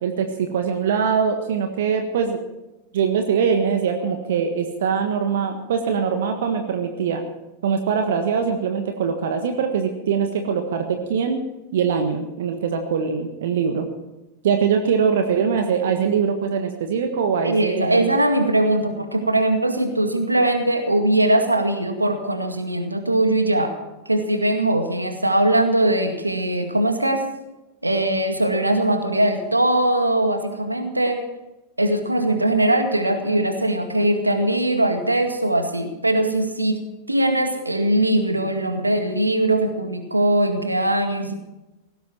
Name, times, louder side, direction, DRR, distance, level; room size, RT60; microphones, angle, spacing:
voice 1, 0.0-2.4 2.9-7.2 7.6-11.4 11.7-13.9 14.4-18.1, right 6 dB, 60° right, 5 dB, 1.5 m, -22 dB
voice 2, 17.4-23.7 24.1-27.3 27.8-31.2 31.8-41.3, right 1 dB, 85° right, 6 dB, 2.0 m, -21 dB
18.0 x 16.0 x 4.5 m, 1.0 s
figure-of-eight pair, 90°, 0 cm